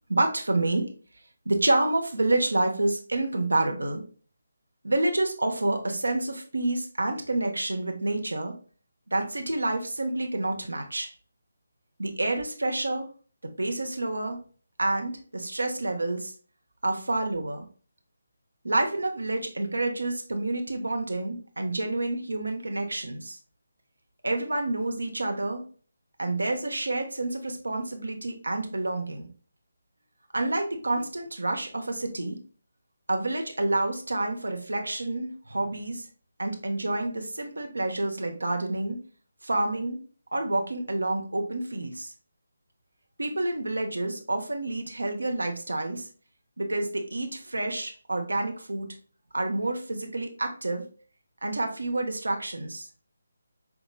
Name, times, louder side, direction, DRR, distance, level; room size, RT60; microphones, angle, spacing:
voice 1, 0.1-0.9 1.4-4.0 4.8-8.6 9.1-11.1 12.0-13.1 13.4-14.4 14.8-16.3 16.8-17.7 18.6-23.4 24.2-25.7 26.2-29.3 30.3-32.4 33.1-36.1 36.4-39.0 39.4-40.0 40.3-42.1 43.2-46.1 46.6-49.0 49.3-50.9 51.4-52.9, right 2 dB, 80° right, 4 dB, 1.0 m, -28 dB
5.9 x 3.9 x 2.2 m, 0.39 s
figure-of-eight pair, 155°, 0 cm